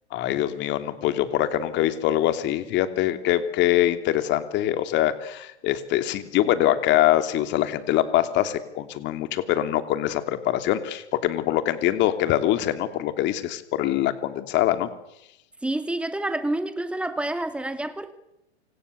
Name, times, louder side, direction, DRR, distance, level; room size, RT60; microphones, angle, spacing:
voice 1, 0.1-14.9, left 13 dB, 35° left, 3.1 m, -24 dB
voice 2, 15.6-18.1, right 1 dB, 5° right, 2.4 m, -28 dB
29.0 x 26.5 x 7.0 m
hypercardioid pair, 125°, 34 cm